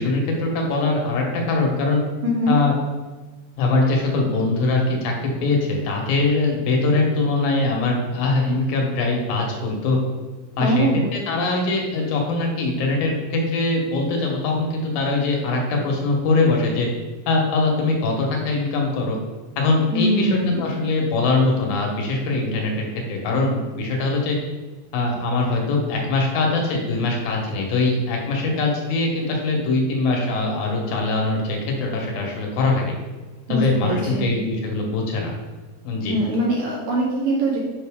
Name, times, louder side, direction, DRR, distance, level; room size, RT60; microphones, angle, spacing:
voice 1, 0.0-2.0 2.5-2.7 3.6-10.0 10.6-16.9 17.3-19.2 19.6-24.4 24.9-32.9 33.5-35.3 35.8-36.1, left 3 dB, 75° left, 0 dB, 2.8 m, -22 dB
voice 2, 2.2-2.6 10.6-11.1 19.9-20.7 33.5-34.3 36.1-37.6, right 1 dB, 65° right, -3 dB, 2.0 m, -22 dB
7.6 x 5.4 x 3.6 m, 1.3 s
omnidirectional pair, 4.2 m